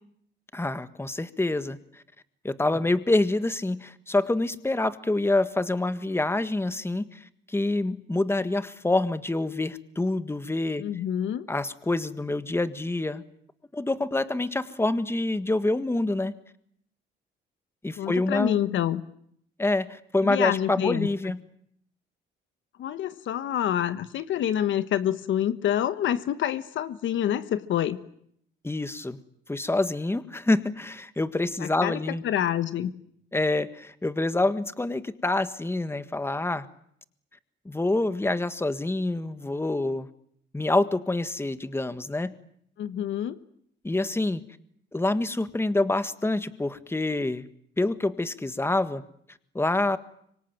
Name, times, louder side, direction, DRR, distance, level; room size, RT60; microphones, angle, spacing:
voice 1, 0.5-2.0 2.4-10.8 11.5-13.2 13.7-16.3 17.8-18.6 19.6-21.4 28.6-29.2 29.5-32.2 33.3-36.6 37.6-40.1 40.5-42.3 43.8-44.4 44.9-47.4 47.8-49.0 49.5-50.0, left 2 dB, 10° left, 12 dB, 1.6 m, -26 dB
voice 2, 10.8-11.4 18.0-19.0 20.2-21.1 22.8-28.0 31.6-32.0 32.2-32.9 42.8-43.4, left 10 dB, 75° left, 13 dB, 1.3 m, -27 dB
25.0 x 24.5 x 9.1 m, 0.70 s
cardioid pair, 90°, 20 cm